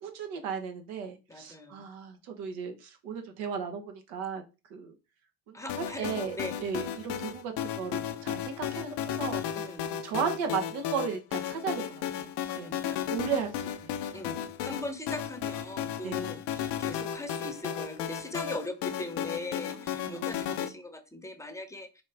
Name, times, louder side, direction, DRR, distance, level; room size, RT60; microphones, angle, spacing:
voice 1, 0.0-4.4 4.7-4.9 5.5-9.4 10.0-12.3 12.5-12.7 13.1-13.9 16.0-16.4 20.0-20.5, right 6 dB, 90° right, 5 dB, 0.9 m, -35 dB
voice 2, 1.3-1.8 5.5-6.6 9.6-9.9 12.5-13.1 14.1-22.0, left 1 dB, 5° left, 8 dB, 0.7 m, -40 dB
sound 1, 5.7-20.7, left 10 dB, 65° left, 0.6 m, -34 dB
4.1 x 2.5 x 3.3 m, 0.29 s
supercardioid pair, 65°, 43 cm